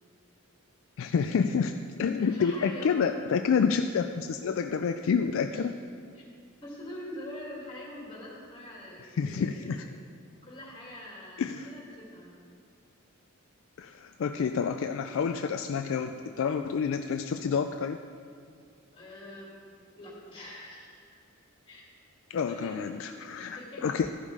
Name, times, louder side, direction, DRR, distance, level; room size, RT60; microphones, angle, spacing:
voice 1, 1.0-5.7 9.2-9.8 11.4-11.7 13.8-18.0 22.3-24.1, left 6 dB, 60° left, 7 dB, 0.3 m, -28 dB
voice 2, 2.2-3.0 5.5-5.6 6.1-6.2 6.6-9.8 10.4-12.4 18.9-19.5 19.9-21.2 21.7-21.9 22.4-23.8, left 1 dB, 25° left, -5 dB, 2.5 m, -44 dB
13.5 x 5.4 x 4.8 m, 2.2 s
head